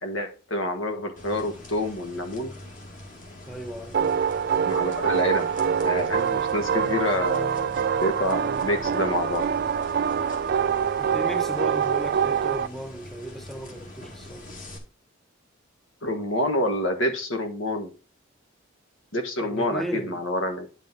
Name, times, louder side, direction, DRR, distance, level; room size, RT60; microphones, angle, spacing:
voice 1, 0.0-2.5 4.6-5.5 5.8-7.7 8.0-9.4 16.0-17.9 19.1-20.7, left 1 dB, 75° left, 1.5 m, -27 dB
sound 1, 1.2-14.8, left 1 dB, 40° left, 1.9 m, -44 dB
voice 2, 3.5-4.0 11.0-14.5 19.4-20.2, equal, ahead, 0.7 m, -35 dB
sound 2, 3.9-12.7, right 7 dB, 50° right, 0.3 m, -25 dB
9.4 x 5.2 x 3.8 m
head